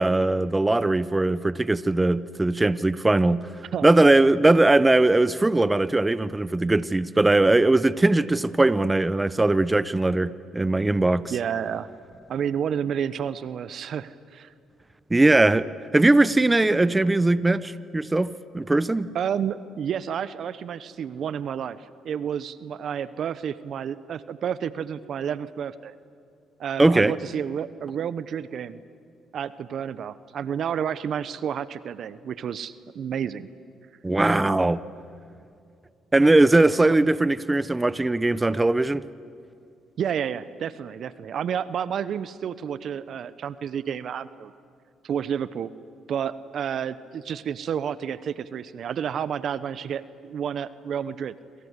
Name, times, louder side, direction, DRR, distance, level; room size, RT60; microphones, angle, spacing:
voice 1, 0.0-3.5 3.8-11.3 15.1-15.7 15.9-19.1 26.8-27.1 34.0-34.8 36.1-39.0, right 2 dB, 20° right, 1.0 m, -20 dB
voice 2, 11.3-11.9 12.3-14.5 19.1-25.9 26.6-28.8 29.3-33.5 36.9-37.0 40.0-44.5 45.0-45.7 46.1-51.3, right 8 dB, 65° right, 0.9 m, -30 dB
27.0 x 27.0 x 8.3 m
supercardioid pair, 60°, 0 cm